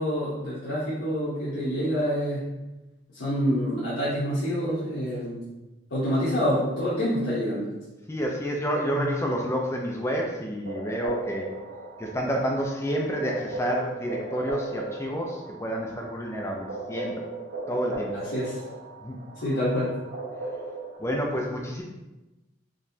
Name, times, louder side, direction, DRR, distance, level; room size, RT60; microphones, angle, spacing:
voice 1, 0.0-2.4 3.1-5.4 5.9-7.7 8.9-9.1 18.1-18.6 19.4-19.9, equal, 70° left, -10 dB, 0.9 m, -27 dB
voice 2, 8.1-11.5 12.0-17.1 17.7-18.1 19.0-19.2 21.0-21.8, equal, 15° left, 0 dB, 0.4 m, -29 dB
sound 1, 10.7-21.0, right 2 dB, 60° right, 0.8 m, -37 dB
4.1 x 3.0 x 2.7 m, 1.0 s
head